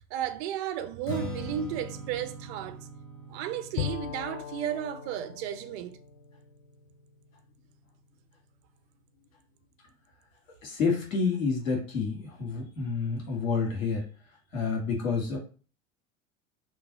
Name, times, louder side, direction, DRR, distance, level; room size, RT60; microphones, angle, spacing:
voice 1, 0.0-2.9 3.3-6.0, right 10 dB, 55° right, 0.6 m, -34 dB
Strum, 1.0-7.3, equal, 30° left, 1.2 m, -42 dB
Bowed string instrument, 3.8-7.5, left 10 dB, 60° left, 0.5 m, -39 dB
voice 2, 10.6-14.0 14.5-15.4, left 5 dB, 75° left, 1.7 m, -29 dB
3.1 x 2.6 x 4.0 m
hypercardioid pair, 80°, 40 cm